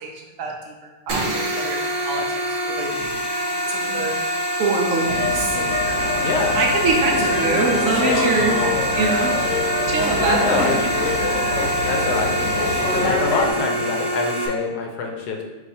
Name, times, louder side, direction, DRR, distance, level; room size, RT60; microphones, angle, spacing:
voice 1, 0.0-2.3 2.6-3.1 3.4-4.1 4.6-5.6 6.5-8.6 8.9-9.3 9.9-10.7, right 3 dB, 70° right, 1 dB, 0.8 m, -24 dB
sound 1, 1.1-14.5, equal, 90° right, 0.3 m, -24 dB
sound 2, 5.1-13.5, left 3 dB, 60° left, 1.0 m, -25 dB
voice 2, 10.2-11.0 11.9-15.4, left 3 dB, 75° left, 2 dB, 1.2 m, -25 dB
4.6 x 2.4 x 4.2 m, 1.2 s
omnidirectional pair, 1.8 m